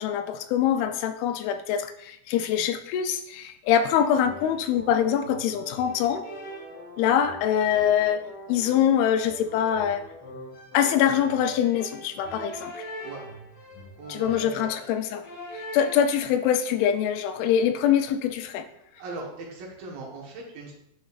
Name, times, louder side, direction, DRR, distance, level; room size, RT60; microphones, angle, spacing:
voice 1, 0.0-6.3 7.0-10.0 10.7-12.8 14.1-15.2 15.7-18.7, left 9 dB, 85° left, 8 dB, 2.5 m, -24 dB
sound 1, 3.6-16.2, equal, 55° left, 1.6 m, -42 dB
voice 2, 14.0-14.7 18.9-20.7, right 3 dB, 70° right, -2 dB, 3.0 m, -39 dB
9.4 x 5.1 x 2.4 m, 0.76 s
omnidirectional pair, 4.4 m